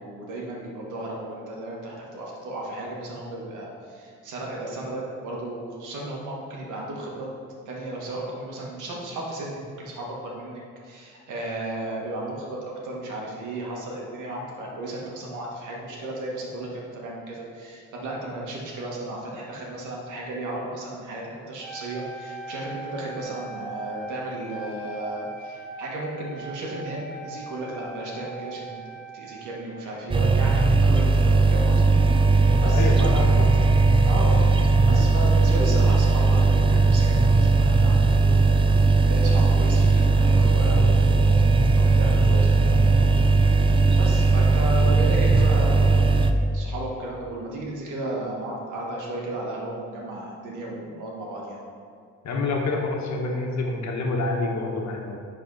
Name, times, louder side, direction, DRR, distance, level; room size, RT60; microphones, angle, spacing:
voice 1, 0.0-7.3 7.7-28.8 29.1-32.3 32.6-33.3 34.0-34.5 34.9-38.8 39.1-43.1 44.0-51.6, right 1 dB, 80° right, -2 dB, 1.8 m, -34 dB
Wind instrument woodwind instrument, 21.6-29.9, right 2 dB, 5° left, 1.1 m, -40 dB
sound 1, 30.1-46.3, right 3 dB, 15° right, 0.5 m, -18 dB
voice 2, 32.7-33.5 52.2-55.2, left 3 dB, 65° left, 0 dB, 1.4 m, -27 dB
10.0 x 4.2 x 4.0 m, 2.3 s
cardioid pair, 90°, 30 cm